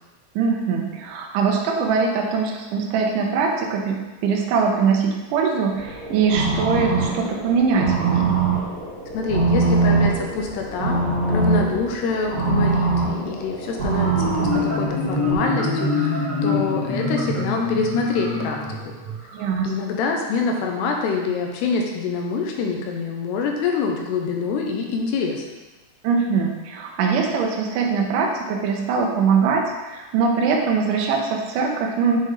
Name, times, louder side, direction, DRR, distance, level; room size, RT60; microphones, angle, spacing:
voice 1, 0.4-8.3 19.3-19.7 26.0-32.2, right 5 dB, 90° right, 0 dB, 1.8 m, -22 dB
sound 1, 5.7-15.4, right 4 dB, 40° right, 2.0 m, -23 dB
voice 2, 9.1-11.0 11.3-18.9 19.6-25.5, left 4 dB, 80° left, 1 dB, 2.8 m, -25 dB
Marimba xylophone, 14.0-19.5, left 3 dB, 15° left, 0.5 m, -25 dB
7.7 x 5.6 x 3.4 m, 1.1 s
omnidirectional pair, 4.9 m